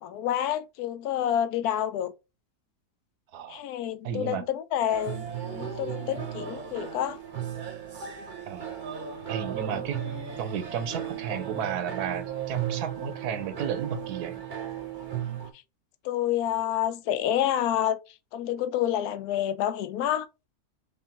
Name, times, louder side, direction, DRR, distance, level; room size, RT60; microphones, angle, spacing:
voice 1, 0.0-2.1 3.5-7.2 9.7-9.8 16.0-18.0 18.3-20.3, left 11 dB, 80° left, 1.1 m, -28 dB
voice 2, 3.3-3.6 4.0-4.4 8.5-8.7 9.3-10.0 10.4-14.4, right 8 dB, 90° right, 1.3 m, -33 dB
sound 1, 4.9-15.5, right 9 dB, 40° right, 0.7 m, -36 dB
3.7 x 3.1 x 2.9 m
omnidirectional pair, 1.6 m